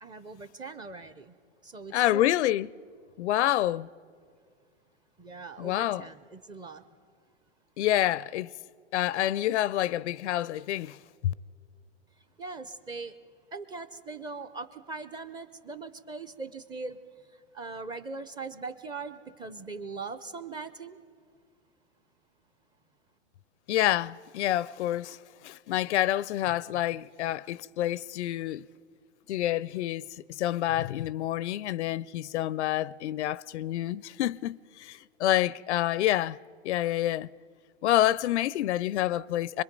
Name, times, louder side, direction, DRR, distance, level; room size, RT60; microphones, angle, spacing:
voice 1, 0.0-1.4 1.6-2.3 5.2-6.8 12.4-13.2 13.5-21.0, right 4 dB, 10° right, 0.5 m, -41 dB
voice 2, 1.9-2.7 3.2-3.9 5.6-6.1 7.8-8.5 8.9-11.0 11.2-11.3 23.7-25.2 25.4-28.6 29.3-30.1 30.4-36.4 36.6-37.3 37.8-39.6, left 13 dB, 75° left, 0.5 m, -28 dB
25.0 x 22.0 x 5.2 m
hypercardioid pair, 125°, 35 cm